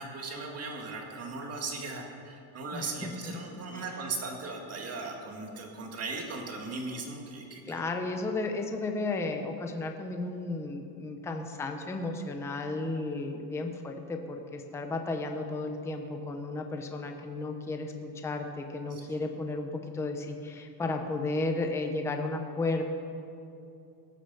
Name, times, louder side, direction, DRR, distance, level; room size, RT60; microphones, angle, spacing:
voice 1, 0.0-7.8 18.9-19.0, right 3 dB, 30° right, 1 dB, 1.9 m, -38 dB
voice 2, 2.7-3.8 7.7-22.8, left 2 dB, 5° left, 4 dB, 0.6 m, -34 dB
18.0 x 6.8 x 6.9 m, 2.6 s
cardioid pair, 160°, 48 cm